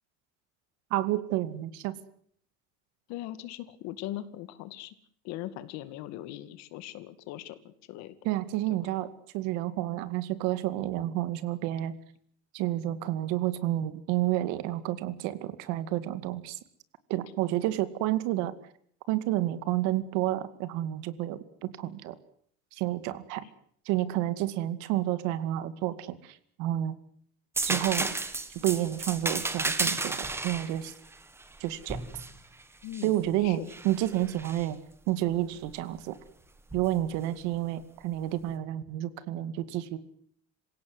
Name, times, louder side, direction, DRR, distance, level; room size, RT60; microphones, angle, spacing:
voice 1, 0.9-1.9 8.2-9.1 9.3-11.9 12.5-16.6 17.1-18.5 19.1-22.1 22.8-23.4 23.9-26.9 27.6-28.1 28.6-30.9 31.6-32.0 33.0-33.6 33.8-34.8 35.1-36.2 36.7-40.0, right 14 dB, 80° right, 13 dB, 2.3 m, -30 dB
voice 2, 3.1-4.9 5.2-8.2 8.8-8.9 23.4-23.5 32.8-33.7, left 14 dB, 65° left, 13 dB, 2.3 m, -40 dB
sound 1, 27.5-33.1 33.7-34.6 36.7-36.9, right 3 dB, 10° right, 1.6 m, -33 dB
27.0 x 17.0 x 9.6 m, 0.63 s
cardioid pair, 175°, 29 cm